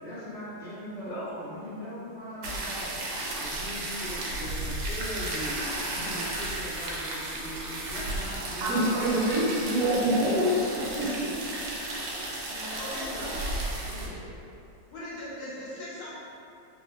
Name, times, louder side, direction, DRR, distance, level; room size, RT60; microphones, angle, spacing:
voice 1, 0.0-9.3 10.0-10.6 12.5-14.3, equal, 5° left, -13 dB, 0.8 m, -40 dB
voice 2, 1.1-1.4 12.7-13.4 14.9-16.1, left 1 dB, 90° left, -9 dB, 1.7 m, -38 dB
sound 1, 2.4-14.1, right 1 dB, 85° right, 1.3 m, -34 dB
voice 3, 8.5-10.7 11.0-11.4, equal, 70° right, -7 dB, 1.0 m, -25 dB
3.7 x 2.9 x 2.2 m, 2.7 s
omnidirectional pair, 2.0 m